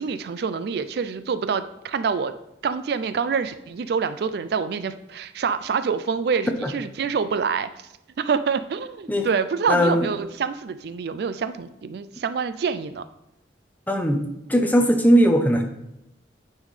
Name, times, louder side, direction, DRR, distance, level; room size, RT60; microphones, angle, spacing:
voice 1, 0.0-2.3 2.6-7.7 8.2-13.0, right 5 dB, 60° right, 12 dB, 0.4 m, -26 dB
voice 2, 9.7-10.1 13.9-14.2 14.5-15.6, equal, 10° left, 4 dB, 0.7 m, -18 dB
9.7 x 5.5 x 3.2 m, 0.86 s
head